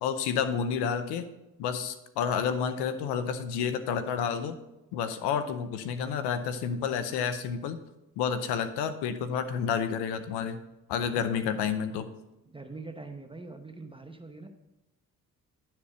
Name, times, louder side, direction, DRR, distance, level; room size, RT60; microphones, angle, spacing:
voice 1, 0.0-1.3 1.6-4.6 4.9-7.8 8.2-10.6 10.9-12.1, left 7 dB, 80° left, 11 dB, 0.7 m, -30 dB
voice 2, 11.1-11.5 11.9-12.0 12.5-14.5, right 3 dB, 15° right, 5 dB, 0.9 m, -44 dB
11.5 x 4.3 x 6.3 m, 0.92 s
supercardioid pair, 55°, 39 cm